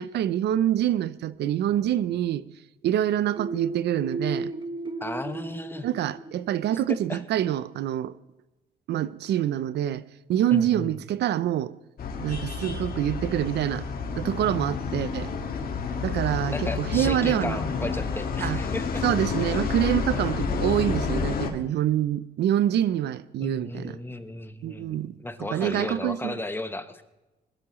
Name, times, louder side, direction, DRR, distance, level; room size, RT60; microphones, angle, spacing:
voice 1, 0.0-2.4 2.8-4.5 5.8-8.1 8.9-10.0 10.3-11.7 12.2-13.9 14.2-15.3 16.0-17.6 18.4-18.6 19.0-24.0 24.6-25.1 25.5-26.4, right 11 dB, 70° right, 0.7 m, -26 dB
sound 1, 3.4-7.0, right 3 dB, 25° right, 1.3 m, -35 dB
voice 2, 5.0-5.9 6.9-7.2 10.5-10.9 16.5-19.0 23.4-27.0, left 2 dB, 10° left, 1.2 m, -34 dB
sound 2, 12.0-21.5, left 5 dB, 55° left, 2.0 m, -29 dB
21.5 x 12.5 x 3.2 m
cardioid pair, 90°, 18 cm